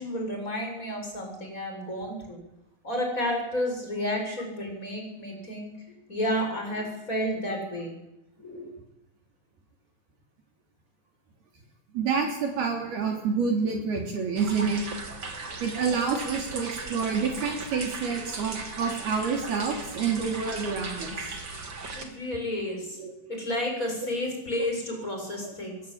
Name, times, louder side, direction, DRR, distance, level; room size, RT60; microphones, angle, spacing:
voice 1, 0.0-2.4 2.8-5.7 6.1-7.9 8.4-8.7 21.9-23.0 23.3-25.8, left 1 dB, 15° left, 2 dB, 7.7 m, -31 dB
voice 2, 11.9-14.8 15.6-21.4 23.0-23.1 24.6-24.7 25.4-25.5, right 5 dB, 65° right, 1 dB, 5.2 m, -28 dB
sound 1, 14.4-22.1, right 3 dB, 30° right, 2.9 m, -37 dB
24.0 x 22.5 x 8.9 m, 0.92 s
omnidirectional pair, 5.0 m